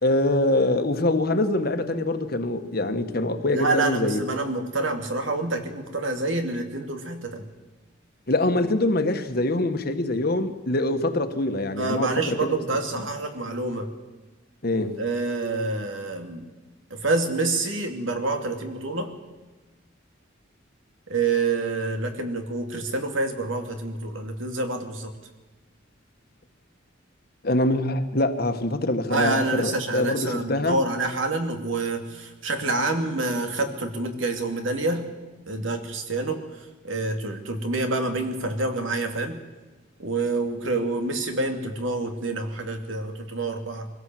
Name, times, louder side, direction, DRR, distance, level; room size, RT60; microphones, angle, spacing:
voice 1, 0.0-4.2 8.3-12.6 14.6-15.0 27.4-30.8, left 2 dB, 50° left, 8 dB, 1.4 m, -24 dB
voice 2, 3.5-7.5 11.8-13.9 15.0-16.5 16.9-19.1 21.1-25.1 29.1-35.0 35.5-36.4 36.8-39.4 40.0-43.9, right 3 dB, 80° right, 5 dB, 2.5 m, -27 dB
23.0 x 16.5 x 7.7 m, 1.2 s
head